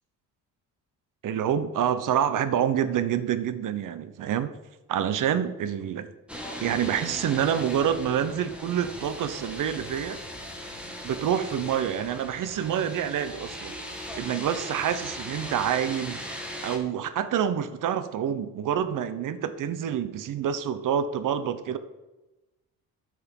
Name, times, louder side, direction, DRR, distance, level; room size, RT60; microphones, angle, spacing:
voice 1, 1.2-4.5 4.9-6.1 6.6-10.2 11.0-13.7 14.2-16.2 16.6-21.8, right 9 dB, 60° right, 12 dB, 1.0 m, -27 dB
sound 1, 6.3-16.8, equal, 5° right, 2.0 m, -39 dB
12.5 x 6.4 x 5.4 m, 1.1 s
cardioid pair, 105°, 36 cm